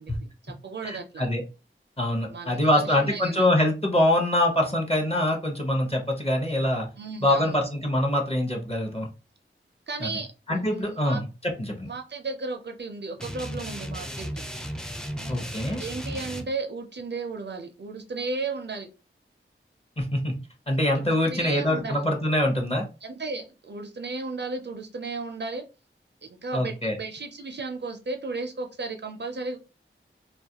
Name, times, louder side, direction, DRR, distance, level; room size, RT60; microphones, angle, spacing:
voice 1, 0.0-1.3 2.3-3.4 7.0-7.6 9.9-10.3 10.5-11.3 11.9-14.5 15.2-15.4 15.8-18.9 20.9-22.0 23.0-25.7 26.2-29.6, right 3 dB, 55° right, 3 dB, 0.4 m, -34 dB
voice 2, 0.8-1.4 2.0-6.9 7.2-9.1 10.0-10.1 10.5-11.9 15.3-15.8 20.0-20.3 20.7-22.9 26.5-27.0, left 1 dB, 30° left, 1 dB, 0.7 m, -24 dB
sound 1, 13.2-16.4, equal, 5° left, 0.4 m, -35 dB
2.3 x 2.1 x 2.8 m, 0.32 s
wide cardioid pair, 40°, 21 cm